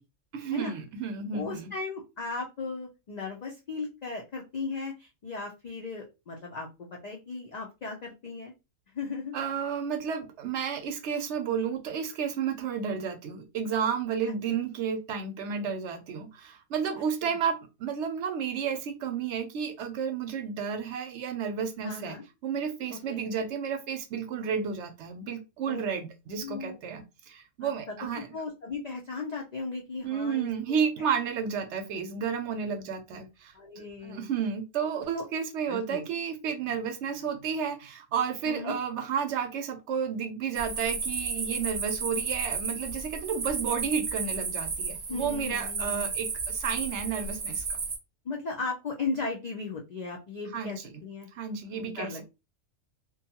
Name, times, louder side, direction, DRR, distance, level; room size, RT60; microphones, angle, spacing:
voice 1, 0.3-1.7 9.3-22.2 22.4-28.3 30.0-47.8 50.5-50.9 51.3-52.3, right 7 dB, 70° right, 7 dB, 0.8 m, -32 dB
voice 2, 1.3-8.5 8.9-9.3 17.2-17.4 21.8-22.2 23.1-23.2 25.7-25.8 26.4-26.8 27.6-30.8 33.5-34.3 35.1-35.2 35.7-36.0 38.5-38.8 45.1-46.1 48.3-51.3 51.7-52.3, left 4 dB, 80° left, 0 dB, 0.3 m, -37 dB
sound 1, 40.5-48.0, right 4 dB, 45° right, 0.6 m, -33 dB
2.6 x 2.2 x 2.7 m, 0.26 s
omnidirectional pair, 1.4 m